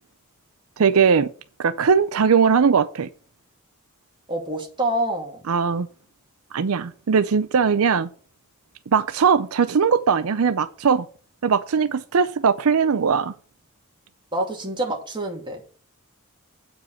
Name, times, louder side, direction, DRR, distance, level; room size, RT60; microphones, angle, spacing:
voice 1, 0.8-1.3 1.6-3.1 5.5-5.9 6.5-8.1 8.9-11.0 11.4-13.3, right 6 dB, 80° right, 0.5 m, -19 dB
voice 2, 4.3-5.4 14.3-15.6, right 1 dB, 20° right, 2.4 m, -27 dB
8.7 x 5.2 x 7.7 m
head